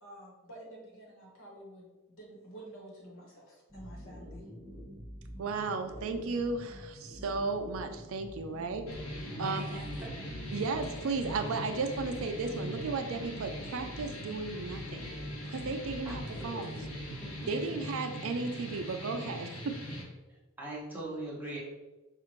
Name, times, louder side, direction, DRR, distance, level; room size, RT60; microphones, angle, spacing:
voice 1, 0.0-4.4, right 1 dB, 60° left, -2 dB, 1.2 m, -50 dB
sound 1, 3.7-17.5, equal, 10° left, 0.5 m, -47 dB
voice 2, 5.4-8.9 9.4-9.8 10.5-15.2 15.5-16.7 17.5-19.8, right 4 dB, 65° right, 6 dB, 0.4 m, -34 dB
sound 2, 8.9-20.0, equal, 90° left, 1.2 m, -41 dB
voice 3, 9.3-10.1 16.0-16.8 17.2-17.5 20.3-21.6, right 1 dB, 10° right, -6 dB, 1.0 m, -42 dB
5.5 x 2.4 x 3.0 m, 1.1 s
head